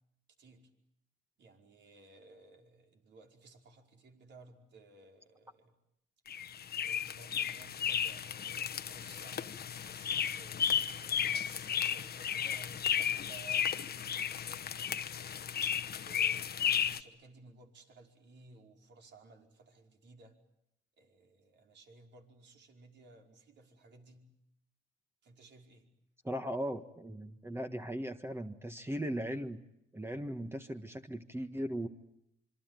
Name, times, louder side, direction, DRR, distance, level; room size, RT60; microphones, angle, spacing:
voice 1, 0.4-0.7 1.4-5.8 6.8-20.3 21.0-24.3 25.2-25.9, right 3 dB, 65° right, 2 dB, 5.2 m, -58 dB
sound 1, 6.3-17.0, left 8 dB, 50° left, 1.2 m, -34 dB
voice 2, 26.2-29.6 29.9-31.9, equal, 10° right, 6 dB, 1.5 m, -38 dB
26.0 x 24.5 x 9.2 m, 0.79 s
cardioid pair, 90°, 20 cm